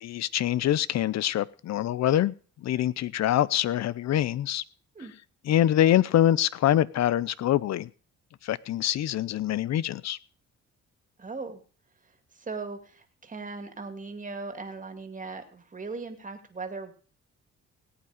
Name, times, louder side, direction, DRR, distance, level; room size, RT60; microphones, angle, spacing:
voice 1, 0.0-2.3 2.6-4.6 5.5-7.9 8.4-10.2, left 12 dB, 60° left, 21 dB, 0.6 m, -25 dB
voice 2, 11.2-11.6 12.4-17.0, right 4 dB, 25° right, 7 dB, 2.3 m, -38 dB
17.5 x 8.7 x 5.0 m, 0.40 s
cardioid pair, 90°, 30 cm